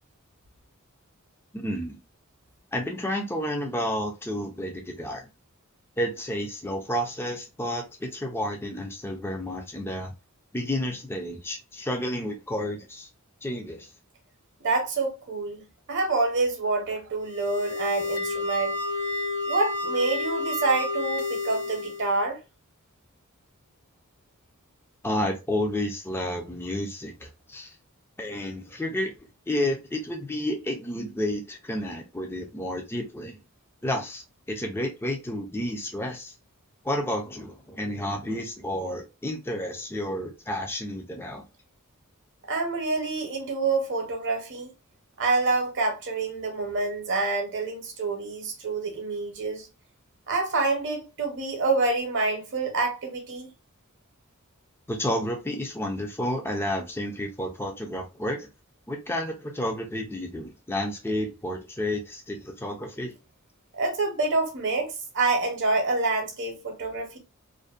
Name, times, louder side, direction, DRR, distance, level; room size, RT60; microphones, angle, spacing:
voice 1, 1.5-2.0 2.7-5.2 6.0-10.1 10.5-13.1 13.4-13.9 25.0-27.7 28.2-29.1 29.5-33.4 33.8-36.3 36.8-41.4 54.9-58.5 58.9-63.1, left 1 dB, 10° left, 0.4 m, -31 dB
voice 2, 14.6-15.6 15.9-18.7 19.5-22.4 42.5-44.7 45.2-49.7 50.3-53.5 63.7-67.2, right 3 dB, 55° right, 0.8 m, -27 dB
sound 1, 17.2-22.1, left 2 dB, 70° left, 1.0 m, -30 dB
2.5 x 2.1 x 2.4 m
head